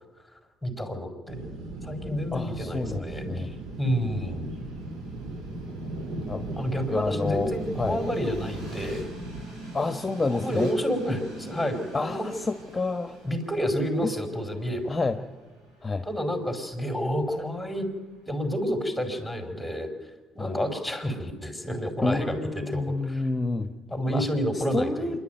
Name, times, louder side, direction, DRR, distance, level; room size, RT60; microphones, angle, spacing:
voice 1, 0.6-1.4 1.8-3.5 3.8-4.5 6.6-9.0 10.3-12.3 13.2-14.9 16.0-17.9 18.3-19.9 20.3-23.2 23.9-25.2, equal, ahead, 4 dB, 4.8 m, -29 dB
sound 1, 1.3-9.4, right 2 dB, 70° right, 2.2 m, -37 dB
voice 2, 2.3-3.5 6.3-6.4 6.9-7.5 7.8-8.0 9.7-10.7 11.9-13.2 14.0-14.1 14.9-15.2 15.8-16.0 20.4-20.6 22.0-23.7 24.1-24.2 24.5-25.2, left 3 dB, 20° left, 6 dB, 1.3 m, -28 dB
Train, 2.8-18.9, right 1 dB, 85° right, 6.8 m, -46 dB
26.0 x 11.5 x 9.2 m, 1.2 s
supercardioid pair, 75°, 0 cm